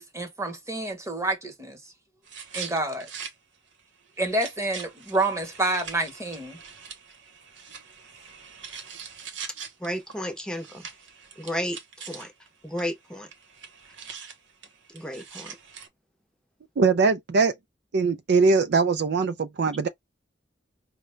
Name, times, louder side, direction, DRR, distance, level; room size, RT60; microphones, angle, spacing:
voice 1, 0.0-1.8 2.5-3.1 4.2-6.6, right 2 dB, 15° right, 1.0 m, -28 dB
sound 1, 2.3-3.3 3.7-3.8 4.2-12.5 12.8-12.9 13.1-15.9, right 6 dB, 85° right, 1.0 m, -42 dB
voice 2, 9.8-10.9 11.4-12.3 12.6-13.3 14.9-15.6, equal, 5° left, 0.7 m, -33 dB
voice 3, 16.8-17.5 17.9-19.9, right 4 dB, 60° right, 0.4 m, -21 dB
5.1 x 2.2 x 3.2 m
head